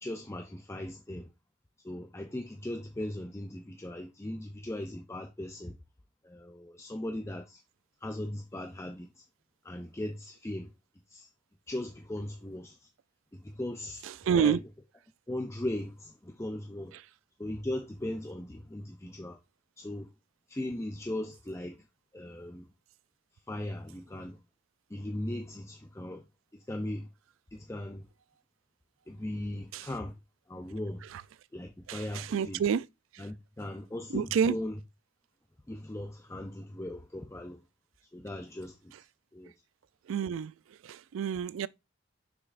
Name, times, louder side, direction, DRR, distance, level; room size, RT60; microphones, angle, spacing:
voice 1, 0.0-1.3 1.8-5.7 6.2-7.6 8.0-9.2 9.6-10.7 11.1-11.3 11.7-12.9 13.3-14.1 14.4-14.6 15.3-17.0 17.4-19.4 19.8-20.1 20.5-21.8 22.1-22.7 23.5-24.4 24.9-26.2 26.7-27.1 27.5-28.0 29.1-30.1 30.5-31.0 31.5-32.6 33.2-34.8 35.7-37.6 38.1-38.9 39.3-39.5, left 1 dB, 15° left, 0.5 m, -38 dB
voice 2, 14.3-14.6 29.7-29.9 31.9-32.8 34.1-34.5 40.1-40.5 40.8-41.7, right 7 dB, 85° right, 0.3 m, -28 dB
6.5 x 6.0 x 2.5 m
head